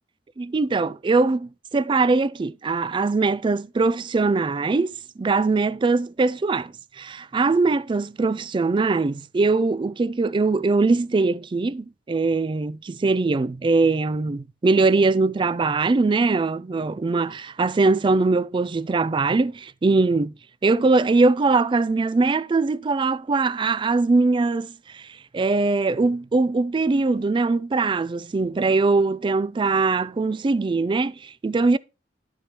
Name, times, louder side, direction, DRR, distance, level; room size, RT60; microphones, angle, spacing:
voice 1, 0.4-4.9 5.2-20.3 20.6-25.1 25.3-31.8, right 3 dB, 25° right, 0.3 m, -21 dB
11.0 x 6.2 x 2.9 m
head